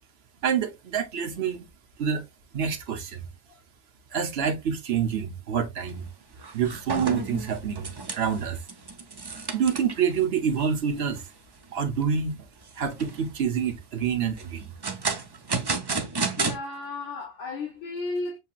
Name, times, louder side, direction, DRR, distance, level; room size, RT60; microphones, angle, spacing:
voice 1, 0.4-1.7 2.0-2.2 2.5-3.2 4.1-6.1 6.5-7.9 8.1-8.6 9.5-11.2 11.7-12.5 12.8-14.7, right 7 dB, 60° right, 1.1 m, -27 dB
sound 1, 5.9-6.1 6.4-10.1 10.6-10.7 11.2-11.3 11.7-12.2 12.7-13.3 14.4-16.6, right 4 dB, 35° right, 0.4 m, -31 dB
voice 2, 16.4-18.4, left 3 dB, 85° left, 1.5 m, -34 dB
6.6 x 2.8 x 2.4 m
omnidirectional pair, 1.2 m